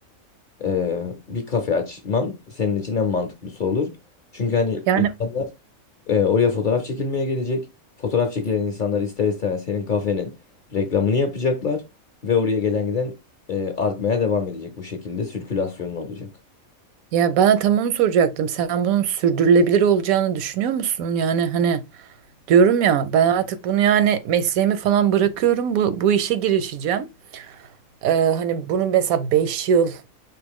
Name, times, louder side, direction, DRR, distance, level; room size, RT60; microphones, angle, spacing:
voice 1, 0.6-3.9 4.3-5.5 6.1-7.7 8.0-10.3 10.7-11.8 12.2-13.1 13.5-16.3, left 5 dB, 45° left, 0.7 m, -24 dB
voice 2, 17.1-21.8 22.5-27.1 27.3-27.6 28.0-30.0, right 8 dB, 85° right, 1.0 m, -20 dB
5.1 x 2.8 x 3.5 m
omnidirectional pair, 1.4 m